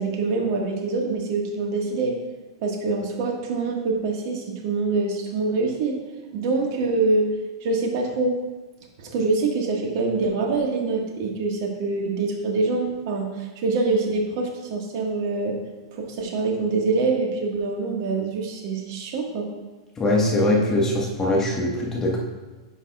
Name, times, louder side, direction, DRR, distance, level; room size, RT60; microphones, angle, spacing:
voice 1, 0.0-2.2 2.6-6.0 6.3-7.3 7.6-8.4 9.0-15.6 15.9-19.5, right 3 dB, 50° right, 1 dB, 1.6 m, -25 dB
voice 2, 20.0-22.2, left 1 dB, 20° left, -2 dB, 1.5 m, -22 dB
9.7 x 6.4 x 2.4 m, 1.2 s
hypercardioid pair, 105°, 2 cm